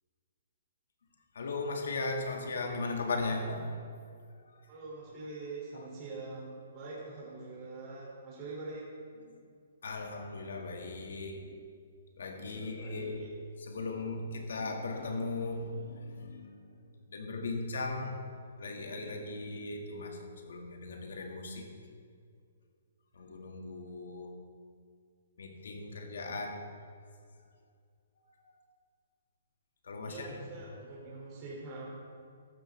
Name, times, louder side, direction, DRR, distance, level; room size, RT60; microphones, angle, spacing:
voice 1, 1.3-3.9 4.4-4.6 5.7-5.9 9.3-9.4 9.8-11.5 12.2-13.2 13.6-18.1 18.6-21.7 23.1-24.3 25.4-26.6 28.2-28.5 29.8-30.3, left 3 dB, 80° left, 2 dB, 2.2 m, -38 dB
voice 2, 4.7-8.8 12.4-13.3 30.0-31.8, right 3 dB, 25° right, -6 dB, 3.2 m, -44 dB
14.5 x 12.5 x 3.6 m, 2.2 s
hypercardioid pair, 165°, 0 cm